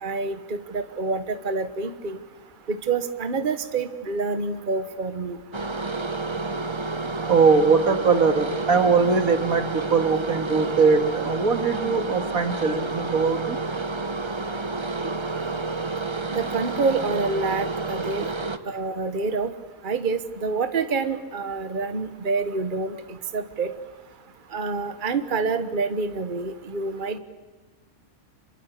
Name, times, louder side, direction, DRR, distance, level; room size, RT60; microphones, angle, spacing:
voice 1, 0.0-2.2 2.7-5.4 16.3-18.2 18.6-19.5 19.8-23.7 24.5-27.2, right 4 dB, 35° right, 10 dB, 1.4 m, -27 dB
sound 1, 5.5-18.6, right 3 dB, 20° right, 1.0 m, -30 dB
voice 2, 7.3-13.6, right 5 dB, 80° right, 8 dB, 2.4 m, -21 dB
26.5 x 23.0 x 8.3 m, 1.3 s
omnidirectional pair, 1.5 m